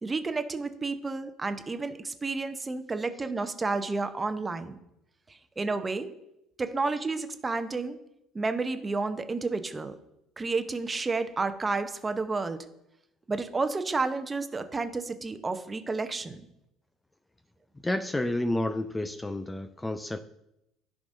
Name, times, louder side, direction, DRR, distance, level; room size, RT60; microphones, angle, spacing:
voice 1, 0.0-4.7 5.3-6.1 6.6-8.0 8.3-10.0 10.4-12.6 13.3-16.4, right 3 dB, 25° right, 10 dB, 0.8 m, -31 dB
voice 2, 17.8-20.2, left 1 dB, 15° left, 10 dB, 0.5 m, -30 dB
14.5 x 4.9 x 2.7 m, 0.84 s
figure-of-eight pair, 55°, 0 cm